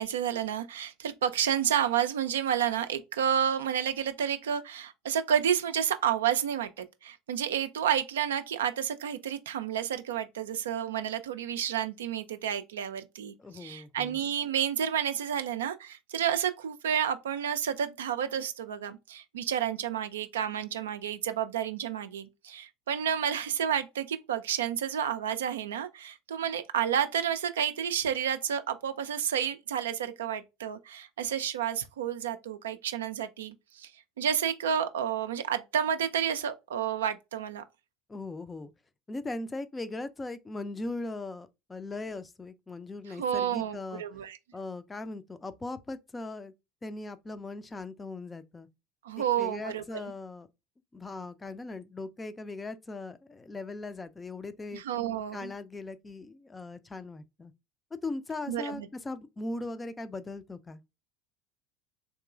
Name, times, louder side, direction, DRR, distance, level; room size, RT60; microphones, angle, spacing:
voice 1, 0.0-33.9 34.2-37.6 43.2-44.4 49.0-49.8 54.7-55.5 58.5-58.9, right 9 dB, 70° right, 0.3 m, -30 dB
voice 2, 13.4-14.2 38.1-38.7 39.1-44.0 44.5-46.5 46.8-48.7 49.4-50.5 50.9-54.8 55.3-57.5 58.0-60.8, left 2 dB, 15° left, 0.4 m, -39 dB
3.7 x 2.9 x 2.3 m
figure-of-eight pair, 70°, 0 cm